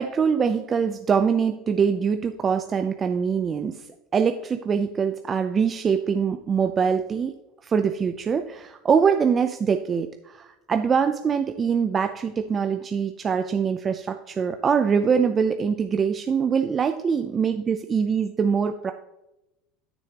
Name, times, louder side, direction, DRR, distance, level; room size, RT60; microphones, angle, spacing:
voice 1, 0.0-3.8 4.1-7.3 7.6-18.9, right 6 dB, 25° right, 7 dB, 0.5 m, -23 dB
12.0 x 6.9 x 2.9 m, 0.90 s
supercardioid pair, 135°, 0 cm